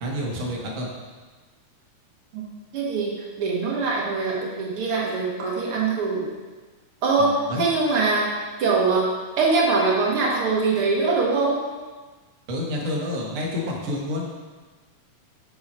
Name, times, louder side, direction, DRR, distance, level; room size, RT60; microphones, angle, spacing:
voice 1, 0.0-0.9 7.2-7.6 12.5-14.2, left 1 dB, 85° right, -3 dB, 0.7 m, -29 dB
voice 2, 2.7-6.3 7.0-8.3 8.6-9.1 9.4-11.6, right 4 dB, 55° right, -3 dB, 1.8 m, -23 dB
7.0 x 6.3 x 4.3 m, 1.3 s
omnidirectional pair, 3.5 m